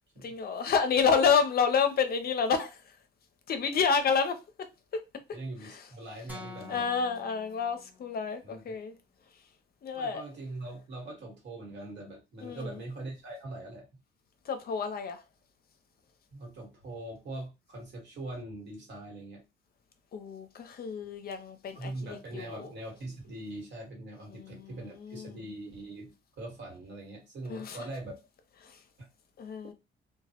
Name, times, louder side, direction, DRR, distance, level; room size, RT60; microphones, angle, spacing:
voice 1, 0.2-2.8 3.5-4.4 5.6-5.8 6.7-8.9 9.8-10.2 12.4-12.7 14.5-15.2 20.1-22.7 24.3-25.4 27.5-27.8 28.6-28.8 29.4-29.7, left 6 dB, 50° left, 0.5 m, -29 dB
voice 2, 5.3-6.8 8.4-8.8 9.9-13.9 16.3-19.4 21.7-28.2 29.0-29.1, right 2 dB, 65° right, 1.2 m, -42 dB
sound 1, 6.3-8.4, left 3 dB, 10° right, 0.8 m, -48 dB
2.2 x 2.0 x 2.8 m
cardioid pair, 90°, 20 cm